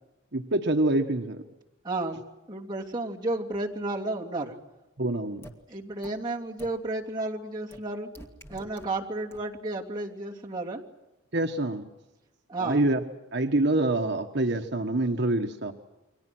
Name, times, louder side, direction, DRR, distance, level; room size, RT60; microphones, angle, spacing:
voice 1, 0.3-1.4 5.0-5.5 11.3-11.8 12.6-13.0 13.3-15.7, right 2 dB, 55° right, 4 dB, 1.3 m, -26 dB
voice 2, 1.8-2.2 2.5-4.6 5.7-8.1 8.5-10.8 12.5-12.8, right 2 dB, 20° right, -3 dB, 2.9 m, -32 dB
sound 1, 5.4-5.5 6.0-6.1 6.6-6.7 7.7-7.8 8.1-8.9 9.3-9.4, right 1 dB, 10° left, 2.4 m, -45 dB
30.0 x 23.5 x 6.2 m, 1.0 s
head